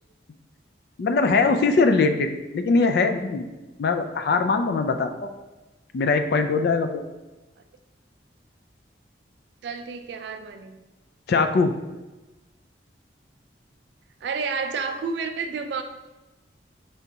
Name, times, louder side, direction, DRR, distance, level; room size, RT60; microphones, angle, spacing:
voice 1, 1.0-3.5 3.8-5.3 5.9-7.0 11.3-11.7, left 4 dB, 60° left, 7 dB, 0.3 m, -21 dB
voice 2, 9.6-10.8 14.2-15.8, right 5 dB, 65° right, 7 dB, 0.3 m, -30 dB
5.0 x 3.4 x 2.8 m, 1.1 s
head